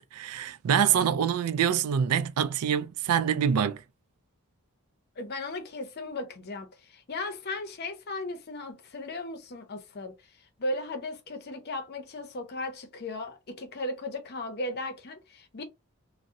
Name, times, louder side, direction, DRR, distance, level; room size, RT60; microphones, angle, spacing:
voice 1, 0.1-3.8, right 8 dB, 85° right, 0.4 m, -25 dB
voice 2, 5.2-10.1 10.6-15.6, left 2 dB, 45° left, 0.6 m, -36 dB
2.7 x 2.1 x 3.5 m
head